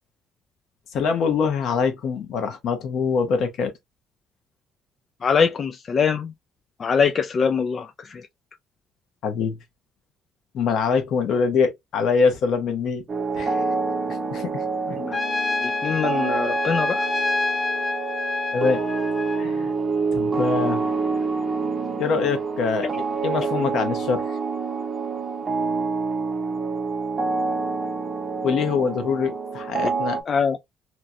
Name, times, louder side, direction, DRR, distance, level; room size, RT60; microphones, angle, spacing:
voice 1, 0.9-3.7 9.2-9.6 10.5-13.0 13.3-13.6 14.1-14.6 18.5-18.8 19.3-19.7 20.1-20.8 22.0-22.9 23.2-24.2 28.4-30.2, left 5 dB, 65° left, 0.9 m, -24 dB
voice 2, 5.2-6.3 6.8-8.2 15.0-15.2 15.6-17.1 29.8-29.9 30.3-30.6, left 6 dB, 45° left, 0.4 m, -23 dB
sound 1, 13.1-30.2, right 4 dB, 40° right, 0.7 m, -27 dB
Trumpet, 15.1-19.5, left 3 dB, 20° left, 0.7 m, -27 dB
2.8 x 2.4 x 2.7 m
supercardioid pair, 75°, 0 cm